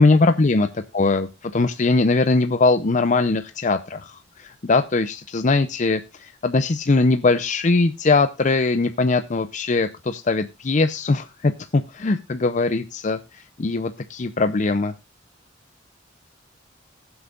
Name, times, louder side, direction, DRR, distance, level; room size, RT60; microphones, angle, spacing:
voice 1, 0.0-14.9, left 3 dB, 40° left, 10 dB, 0.6 m, -21 dB
20.0 x 7.9 x 2.4 m, 0.24 s
head